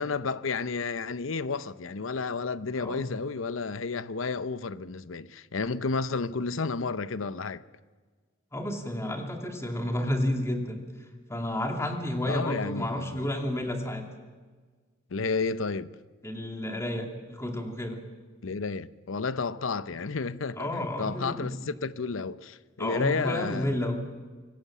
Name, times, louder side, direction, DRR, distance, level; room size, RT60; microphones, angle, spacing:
voice 1, 0.0-7.6 12.3-13.3 15.1-15.9 18.4-24.0, left 4 dB, 90° left, 0.7 m, -31 dB
voice 2, 2.8-3.1 8.5-10.8 11.3-14.0 16.2-18.0 20.6-21.5 22.8-24.0, left 1 dB, 15° left, 2.6 m, -31 dB
25.5 x 15.5 x 7.3 m
head